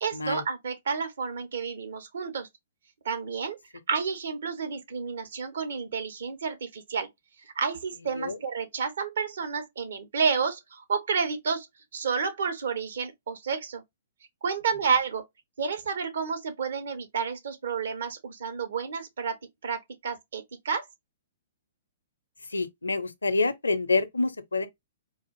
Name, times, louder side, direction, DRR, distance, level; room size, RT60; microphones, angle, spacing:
voice 1, 0.0-2.5 3.0-3.6 3.9-7.1 7.6-11.7 11.9-13.8 14.4-15.3 15.6-20.9, right 5 dB, 60° right, 0.9 m, -30 dB
voice 2, 22.5-24.7, left 3 dB, 75° left, 0.5 m, -27 dB
4.1 x 2.5 x 2.6 m
figure-of-eight pair, 115°, 0 cm